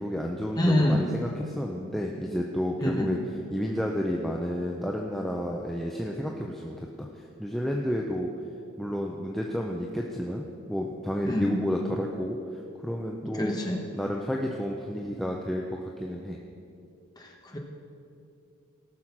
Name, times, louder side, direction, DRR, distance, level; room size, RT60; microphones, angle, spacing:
voice 1, 0.0-3.2 3.5-8.3 8.8-12.4 12.8-13.6 13.9-16.4, equal, ahead, -1 dB, 0.6 m, -31 dB
voice 2, 0.5-1.0 2.8-3.1 11.2-11.6 13.2-13.8 17.2-17.6, left 1 dB, 20° left, 0 dB, 1.3 m, -26 dB
17.5 x 6.3 x 5.9 m, 2.6 s
head